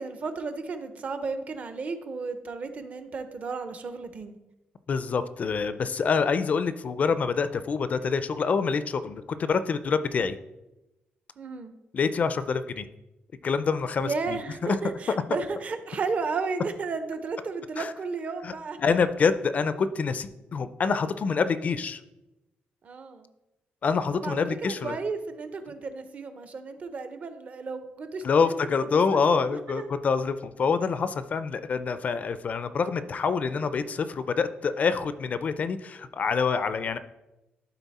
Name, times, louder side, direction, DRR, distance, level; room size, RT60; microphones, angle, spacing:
voice 1, 0.0-4.4 11.4-11.7 14.0-18.8 22.8-23.3 24.1-28.6 29.1-29.9, right 4 dB, 40° right, 9 dB, 0.8 m, -33 dB
voice 2, 4.9-10.4 11.9-12.9 13.4-14.8 15.1-15.2 17.8-17.9 18.4-18.5 18.8-22.0 23.8-24.9 28.2-37.0, left 5 dB, 40° left, 12 dB, 0.4 m, -26 dB
12.0 x 4.2 x 4.1 m, 0.97 s
cardioid pair, 140°, 4 cm